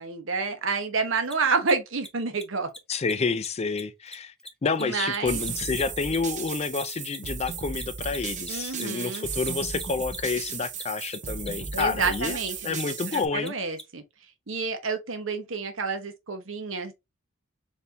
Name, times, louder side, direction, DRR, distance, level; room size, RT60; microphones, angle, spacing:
voice 1, 0.0-2.7 4.8-5.4 8.5-9.3 11.7-12.8 13.1-14.0 14.5-16.9, right 4 dB, 70° right, 1.0 m, -29 dB
Mechanisms, 1.2-1.3 1.6-1.7 2.0-2.1 2.3-2.4 2.7-2.8 3.0-3.1 3.4-3.5 3.8-6.5 6.7-13.8, left 1 dB, 5° left, 0.8 m, -42 dB
voice 2, 2.9-4.3 4.6-12.4 12.6-13.5, left 4 dB, 30° left, 0.4 m, -29 dB
sound 1, 5.3-13.3, right 6 dB, 35° right, 0.7 m, -35 dB
4.3 x 2.7 x 3.3 m
head